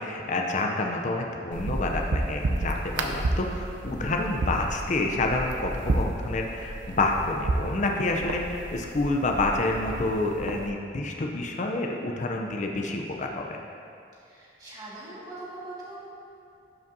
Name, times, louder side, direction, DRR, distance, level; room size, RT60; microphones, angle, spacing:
voice 1, 0.0-13.6, left 2 dB, 40° left, 1 dB, 0.5 m, -28 dB
sound 1, 1.5-10.7, right 2 dB, 85° right, 0.5 m, -31 dB
voice 2, 14.2-16.0, right 2 dB, 20° right, -8 dB, 1.8 m, -41 dB
12.5 x 5.1 x 2.7 m, 2.5 s
head